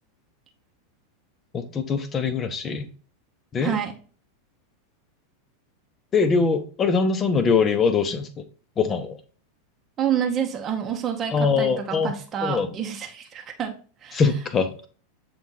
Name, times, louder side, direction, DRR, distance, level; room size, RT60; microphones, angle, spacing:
voice 1, 1.5-2.9 3.5-3.8 6.1-8.3 8.8-9.2 11.3-12.1 12.4-12.7 14.1-14.7, left 5 dB, 25° left, 9 dB, 0.8 m, -22 dB
voice 2, 3.6-4.0 10.0-13.7 14.0-14.2, right 8 dB, 25° right, 3 dB, 0.9 m, -28 dB
7.8 x 3.1 x 3.8 m, 0.39 s
figure-of-eight pair, 85°, 0 cm